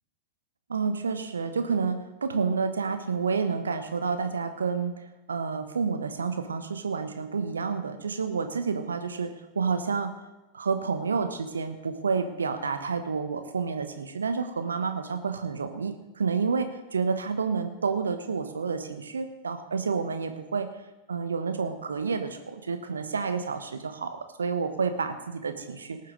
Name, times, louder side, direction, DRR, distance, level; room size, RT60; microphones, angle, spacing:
voice 1, 0.7-4.9 5.3-10.1 10.5-20.7 21.1-26.0, right 5 dB, 70° right, 8 dB, 1.1 m, -29 dB
18.5 x 7.3 x 6.4 m, 1.0 s
figure-of-eight pair, 90°, 0 cm